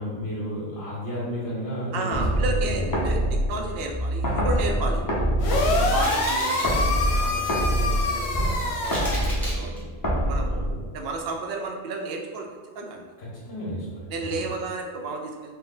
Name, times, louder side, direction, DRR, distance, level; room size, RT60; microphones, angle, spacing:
voice 1, 0.0-2.9 5.6-6.0 10.5-10.7 13.2-14.4, equal, 55° left, -7 dB, 1.4 m, -33 dB
voice 2, 1.9-5.0 5.7-9.7 10.3-10.6 10.9-12.5 12.7-13.1 14.1-15.5, right 3 dB, 70° right, 1 dB, 0.7 m, -32 dB
sound 1, 2.1-11.2, equal, 25° left, 0.6 m, -25 dB
sound 2, 5.4-9.1, left 2 dB, 90° left, 0.9 m, -26 dB
sound 3, 6.0-6.8 7.2-7.6 8.2-8.3 8.8-9.8, equal, ahead, 1.0 m, -35 dB
3.8 x 2.2 x 3.8 m, 1.4 s
omnidirectional pair, 1.1 m